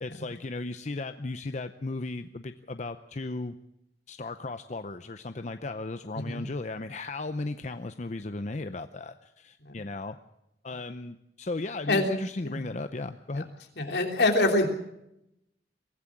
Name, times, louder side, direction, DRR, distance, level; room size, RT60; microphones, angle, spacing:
voice 1, 0.0-3.6 4.1-10.2 10.6-13.5, left 2 dB, 40° left, 9 dB, 0.7 m, -36 dB
voice 2, 13.8-14.7, left 2 dB, 75° left, 3 dB, 3.2 m, -25 dB
23.0 x 15.5 x 7.3 m, 0.83 s
head